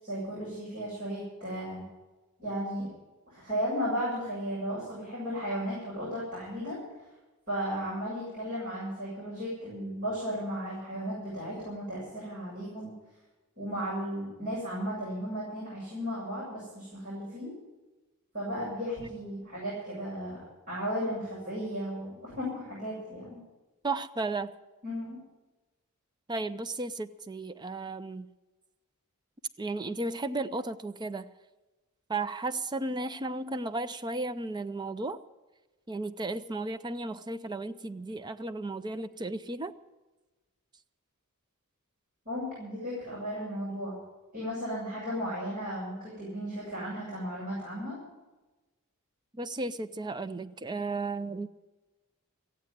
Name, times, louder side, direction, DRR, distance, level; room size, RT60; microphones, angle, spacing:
voice 1, 0.0-1.8 2.4-2.9 3.3-7.1 7.5-12.9 13.6-17.5 18.3-23.4 24.8-25.2 42.3-44.0 44.3-48.0, equal, 40° right, -8 dB, 7.3 m, -35 dB
voice 2, 23.8-24.5 26.3-28.3 29.6-31.3 32.1-35.2 35.9-39.7 49.3-51.5, right 2 dB, 20° right, 11 dB, 0.5 m, -34 dB
15.0 x 9.0 x 9.6 m, 1.2 s
head